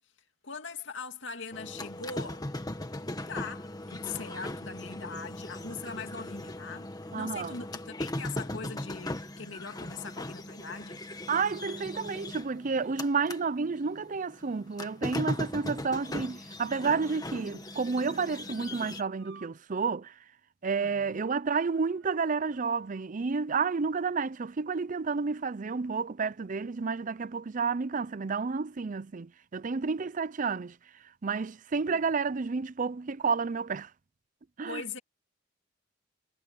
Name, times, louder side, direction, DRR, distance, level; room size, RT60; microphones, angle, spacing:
voice 1, 0.4-2.5 3.3-11.0 20.8-21.2 31.9-32.0 34.6-35.0, left 5 dB, 75° left, 2.6 m, -41 dB
sound 1, 1.5-13.4 13.8-19.0, left 1 dB, 20° left, 1.7 m, -38 dB
voice 2, 7.1-7.6 11.3-20.1 20.6-30.7 31.2-33.9 34.6-34.8, right 5 dB, 45° right, 0.5 m, -30 dB
Motor vehicle (road) / Siren, 16.1-19.5 19.8-19.9 20.8-21.1 21.5-23.1 23.8-23.9, right 6 dB, 85° right, 6.3 m, -59 dB
head